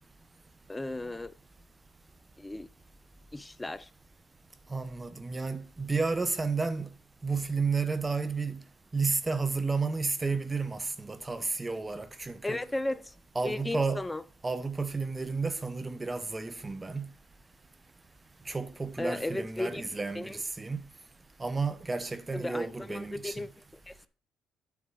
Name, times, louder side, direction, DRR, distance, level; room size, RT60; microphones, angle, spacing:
voice 1, 0.7-1.3 2.4-2.7 3.3-3.9 12.4-13.1 13.4-14.2 19.0-19.8 20.1-20.4 22.3-23.5 23.9-24.1, left 2 dB, 15° left, 0.5 m, -35 dB
voice 2, 4.7-6.9 7.2-8.6 8.9-12.6 13.3-14.0 14.4-17.1 18.5-20.8 21.4-23.4, right 4 dB, 20° right, 0.9 m, -32 dB
9.3 x 3.8 x 6.2 m
supercardioid pair, 65°, 0 cm